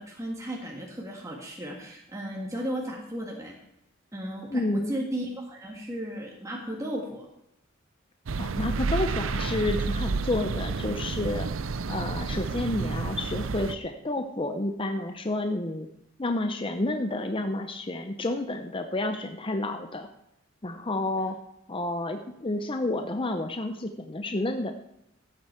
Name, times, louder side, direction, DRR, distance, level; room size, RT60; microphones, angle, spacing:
voice 1, 0.0-3.6 4.1-7.3, equal, 15° right, -1 dB, 1.7 m, -35 dB
voice 2, 4.5-5.0 8.4-11.5 11.9-15.9 16.2-20.1 20.6-21.4 21.7-24.7, left 2 dB, 25° left, 6 dB, 0.7 m, -30 dB
sound 1, 8.3-13.7, right 4 dB, 75° right, 0.6 m, -30 dB
15.0 x 8.7 x 4.5 m, 0.83 s
head